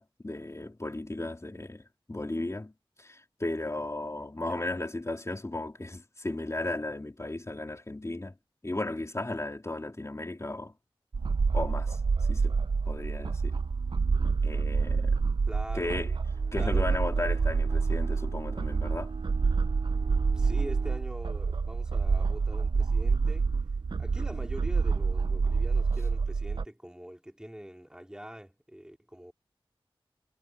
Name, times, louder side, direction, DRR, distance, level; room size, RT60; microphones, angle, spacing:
voice 1, 0.0-2.7 3.0-8.3 8.6-10.7 11.5-12.0 12.3-12.5 12.9-13.6 14.4-15.2 15.7-16.1 16.5-19.1, left 2 dB, 30° left, 3.1 m, -35 dB
sound 1, 11.1-26.7, right 4 dB, 60° right, 0.5 m, -27 dB
voice 2, 15.5-16.0 16.6-16.9 20.3-23.5 24.0-29.3, equal, 10° right, 3.8 m, -43 dB
Bowed string instrument, 16.3-21.2, right 4 dB, 90° right, 4.5 m, -46 dB
wide cardioid pair, 80°, 9 cm